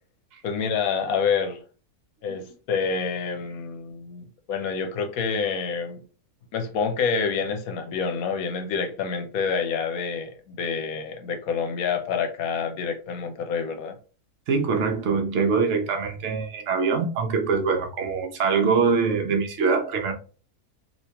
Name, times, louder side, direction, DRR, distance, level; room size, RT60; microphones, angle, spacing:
voice 1, 0.4-1.6 2.2-6.0 6.5-14.0, left 5 dB, 75° left, 1.1 m, -27 dB
voice 2, 14.5-20.1, right 5 dB, 55° right, 1.0 m, -23 dB
3.4 x 2.8 x 2.8 m
omnidirectional pair, 1.6 m